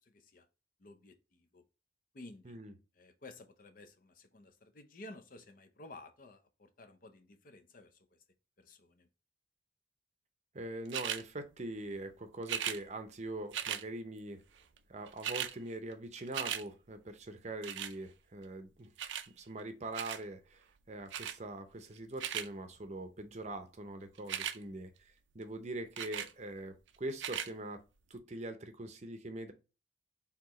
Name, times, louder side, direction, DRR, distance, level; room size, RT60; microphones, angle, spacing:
voice 1, 0.1-0.5 0.8-1.6 2.1-2.6 3.0-7.9 8.6-9.1, left 2 dB, 45° left, 0.6 m, -54 dB
voice 2, 10.5-14.4 14.9-18.9 19.4-27.8 28.1-29.5, right 2 dB, 40° right, 0.6 m, -43 dB
sound 1, 10.9-11.2 12.4-12.8 13.5-13.8 14.8-14.9 15.1-15.5 15.9-16.6 17.6-17.9 19.0-19.3 19.9-20.2 21.1-21.4 22.0-22.5 24.2-24.6 26.0-26.3 27.1-27.5 28.2-28.3, right 9 dB, 80° right, 0.5 m, -37 dB
4.7 x 3.5 x 3.0 m
head